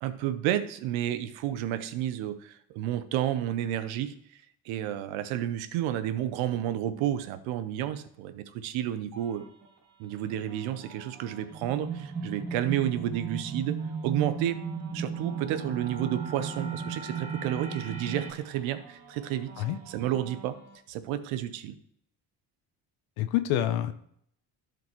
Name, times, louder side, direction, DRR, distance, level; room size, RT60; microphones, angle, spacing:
voice 1, 0.0-4.1 4.7-9.4 10.0-13.8 14.0-14.6 14.9-20.6 20.9-21.7, right 12 dB, 80° right, 12 dB, 0.8 m, -31 dB
sound 1, 9.1-20.8, right 3 dB, 60° right, 2.2 m, -52 dB
sound 2, 11.5-18.3, right 5 dB, 15° right, 1.9 m, -35 dB
voice 2, 23.2-23.9, left 12 dB, 75° left, 10 dB, 0.7 m, -27 dB
11.5 x 5.1 x 3.0 m, 0.68 s
supercardioid pair, 70°, 47 cm